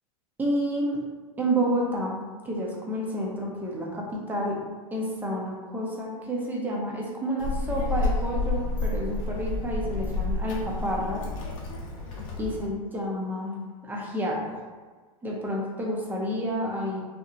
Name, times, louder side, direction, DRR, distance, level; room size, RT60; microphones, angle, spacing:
voice 1, 0.4-1.0 1.4-2.2 2.4-4.6 4.9-11.2 12.4-13.6 13.8-14.6 15.2-17.0, equal, 10° right, -2 dB, 0.5 m, -29 dB
Child speech kid speaking, 7.4-12.7, left 2 dB, 70° left, 0.6 m, -30 dB
2.8 x 2.1 x 2.5 m, 1.4 s
hypercardioid pair, 115°, 18 cm